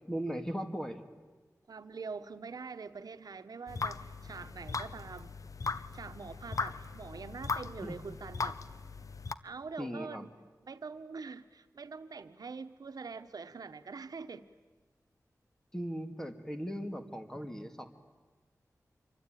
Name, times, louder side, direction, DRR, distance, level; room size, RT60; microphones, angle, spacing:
voice 1, 0.1-1.0 7.8-8.0 9.8-10.3 15.7-17.9, equal, 10° left, 2.3 m, -38 dB
voice 2, 1.7-5.4 5.7-8.6 9.4-10.3 10.6-14.5, right 4 dB, 90° right, 1.0 m, -44 dB
sound 1, 3.7-9.3, left 4 dB, 60° left, 0.9 m, -38 dB
27.0 x 24.0 x 9.2 m
wide cardioid pair, 95°, 6 cm